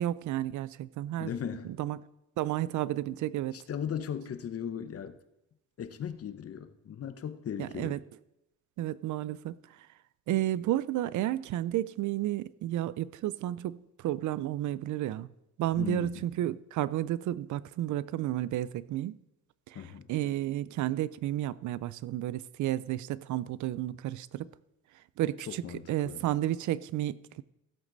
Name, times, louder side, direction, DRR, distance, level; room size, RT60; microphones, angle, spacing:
voice 1, 0.0-1.3 1.8-2.0 2.4-3.6 7.6-8.0 8.8-9.6 10.3-15.3 15.6-19.2 19.7-19.8 20.1-24.5 25.2-27.4, right 13 dB, 75° right, 0.5 m, -32 dB
voice 2, 1.2-1.7 3.5-5.2 5.8-8.0 15.7-16.3 19.7-20.1 25.5-26.2, left 8 dB, 50° left, 1.0 m, -37 dB
15.5 x 8.1 x 4.0 m
cardioid pair, 90°, 30 cm